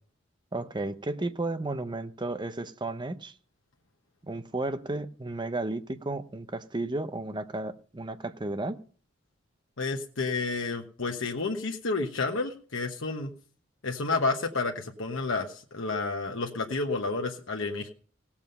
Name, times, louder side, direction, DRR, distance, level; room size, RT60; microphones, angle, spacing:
voice 1, 0.5-3.3 4.2-8.8, right 2 dB, 25° right, 10 dB, 0.7 m, -33 dB
voice 2, 9.8-13.3 13.8-17.9, left 3 dB, 80° left, 2 dB, 1.1 m, -30 dB
17.5 x 7.2 x 5.4 m, 0.43 s
head